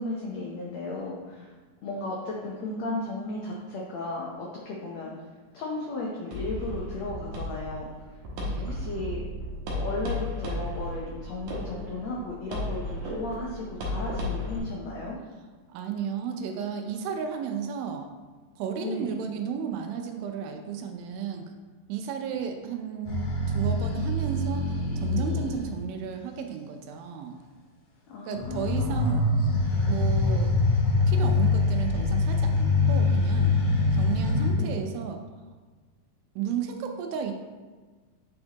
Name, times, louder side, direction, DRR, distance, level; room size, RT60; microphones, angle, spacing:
voice 1, 0.0-1.5 1.8-5.3 5.5-7.9 8.7-9.3 9.7-15.2 18.8-19.2 28.1-29.3 34.5-34.8, left 2 dB, 85° left, -3 dB, 1.5 m, -35 dB
sound 1, 6.3-14.6, left 1 dB, 70° right, 2.4 m, -34 dB
voice 2, 8.4-8.8 15.7-18.1 18.6-21.5 21.9-27.4 28.2-29.2 29.9-30.5 31.1-33.5 34.0-35.2 36.4-37.3, right 7 dB, 85° right, 5 dB, 2.5 m, -33 dB
sound 2, 23.1-25.7 28.3-34.5, left 2 dB, 65° left, 3.2 m, -24 dB
8.7 x 4.3 x 2.9 m, 1.4 s
omnidirectional pair, 4.1 m